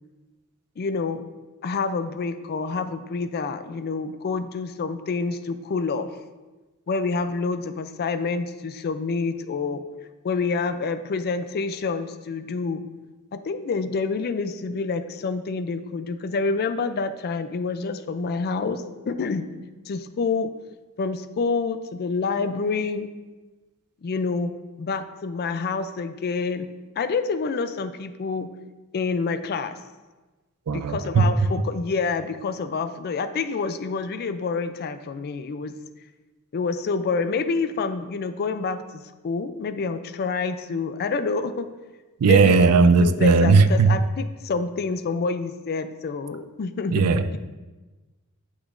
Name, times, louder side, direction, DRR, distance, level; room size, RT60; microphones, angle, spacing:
voice 1, 0.8-1.2 1.6-6.1 6.9-9.8 10.2-12.8 13.3-19.5 19.9-20.5 21.0-23.1 24.0-24.5 24.8-26.7 27.0-28.5 28.9-29.8 30.7-35.7 36.5-41.7 42.2-47.4, left 4 dB, 45° left, 10 dB, 0.4 m, -27 dB
voice 2, 30.7-31.3 42.2-44.0 46.9-47.3, right 4 dB, 85° right, 12 dB, 0.4 m, -17 dB
8.3 x 6.1 x 2.5 m, 1.2 s
head